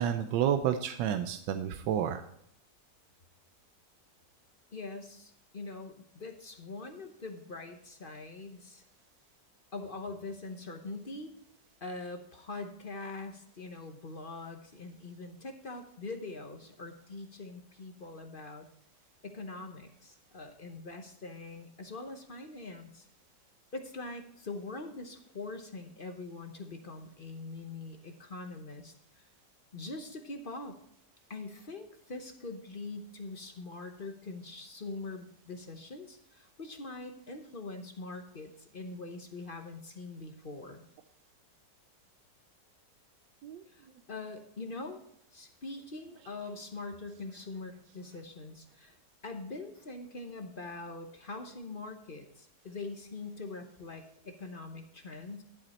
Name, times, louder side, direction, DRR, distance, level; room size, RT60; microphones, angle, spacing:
voice 1, 0.0-2.2 43.4-43.6, right 9 dB, 90° right, 8 dB, 1.3 m, -30 dB
voice 2, 4.7-8.8 9.7-11.3 11.8-18.7 19.2-23.1 23.7-29.2 29.7-30.8 31.3-40.9 43.7-45.0 45.3-49.0 49.2-55.4, left 3 dB, 40° left, 5 dB, 0.9 m, -43 dB
12.0 x 7.9 x 4.2 m, 0.70 s
omnidirectional pair, 1.9 m